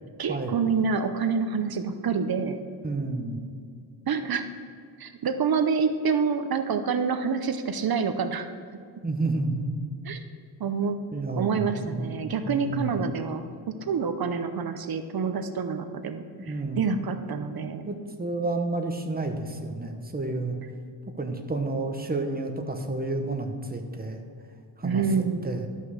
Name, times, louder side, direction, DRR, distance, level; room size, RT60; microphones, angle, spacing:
voice 1, 0.2-2.6 4.1-4.5 5.0-8.5 10.0-10.2 10.6-11.0 11.4-17.8 24.8-25.5, right 5 dB, 55° right, 8 dB, 0.7 m, -27 dB
voice 2, 2.8-3.4 9.0-9.7 11.1-12.9 16.4-16.9 17.9-20.6 21.2-24.2 24.8-25.0 25.4-25.7, right 2 dB, 20° right, 4 dB, 1.0 m, -30 dB
12.0 x 5.5 x 6.4 m, 2.2 s
wide cardioid pair, 110°, 42 cm